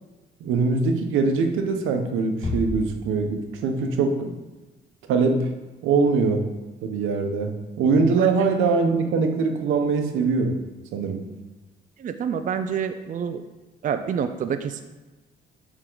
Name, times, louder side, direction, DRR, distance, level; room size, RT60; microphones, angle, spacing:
voice 1, 0.4-4.3 5.1-5.5 5.8-6.4 6.8-7.5 7.8-10.5 10.9-11.2, right 4 dB, 85° right, 5 dB, 0.8 m, -22 dB
Bass drum, 2.4-3.8, left 2 dB, 35° left, 1.3 m, -32 dB
voice 2, 12.0-13.4 13.8-14.8, right 7 dB, 40° right, 8 dB, 0.4 m, -27 dB
7.7 x 3.7 x 3.8 m, 1.2 s
cardioid pair, 90°, 20 cm